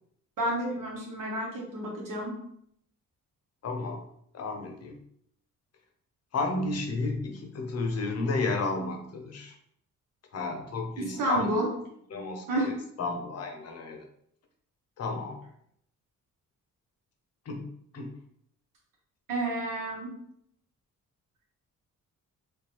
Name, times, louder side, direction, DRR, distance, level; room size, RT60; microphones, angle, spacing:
voice 1, 0.4-2.3 11.0-11.7 12.5-12.7 19.3-20.1, right 1 dB, 90° right, -2 dB, 1.3 m, -30 dB
voice 2, 3.6-4.0 4.3-5.0 6.3-9.5 10.3-11.5 12.1-14.0 15.0-15.4 17.5-17.7 17.9-18.1, left 3 dB, 50° left, 3 dB, 0.7 m, -32 dB
3.4 x 3.2 x 3.0 m, 0.70 s
wide cardioid pair, 175°, 32 cm